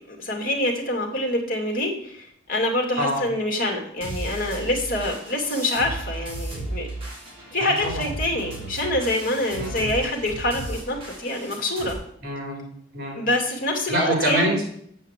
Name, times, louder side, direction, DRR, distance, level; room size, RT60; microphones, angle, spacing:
voice 1, 0.1-6.9 7.5-12.0 13.2-14.5, left 1 dB, 45° left, 1 dB, 2.3 m, -26 dB
sound 1, 4.0-11.9, right 2 dB, 30° right, 5.4 m, -35 dB
voice 2, 7.6-8.1 9.6-9.9 12.2-12.7 12.9-13.2 13.9-14.6, right 1 dB, 50° right, 0 dB, 4.1 m, -26 dB
8.6 x 5.6 x 8.1 m, 0.67 s
head